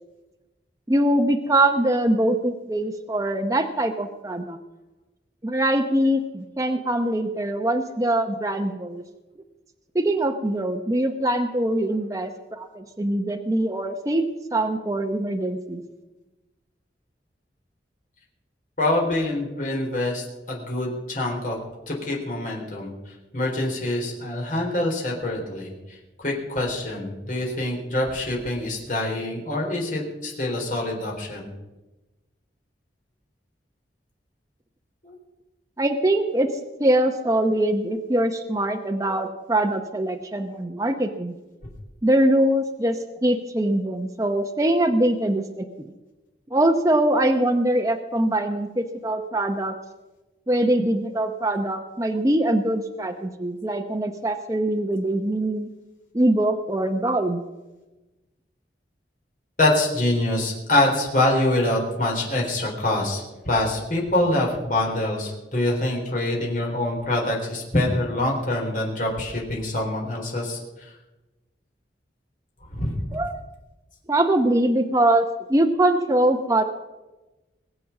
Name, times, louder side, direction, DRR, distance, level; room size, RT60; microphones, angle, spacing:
voice 1, 0.9-4.6 5.4-9.0 9.9-15.8 35.8-36.5 36.8-41.3 42.0-45.9 46.5-49.8 50.5-55.7 56.1-57.4 73.1-73.4 74.1-76.6, right 1 dB, 20° right, 5 dB, 0.8 m, -23 dB
voice 2, 18.8-22.9 23.3-31.5 35.0-35.1 59.6-70.9 72.7-73.0, left 1 dB, 50° left, -1 dB, 3.9 m, -25 dB
20.5 x 7.8 x 7.2 m, 1.1 s
head